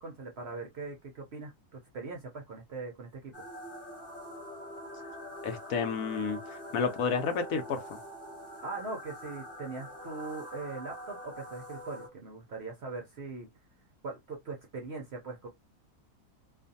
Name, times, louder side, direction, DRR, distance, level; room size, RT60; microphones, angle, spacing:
voice 1, 0.0-3.4 8.6-13.5 14.0-15.5, right 3 dB, 60° right, 0.7 m, -41 dB
sound 1, 3.3-12.1, equal, 20° left, 0.4 m, -45 dB
voice 2, 5.4-8.0, left 5 dB, 70° left, 1.0 m, -31 dB
2.5 x 2.4 x 2.6 m
omnidirectional pair, 1.6 m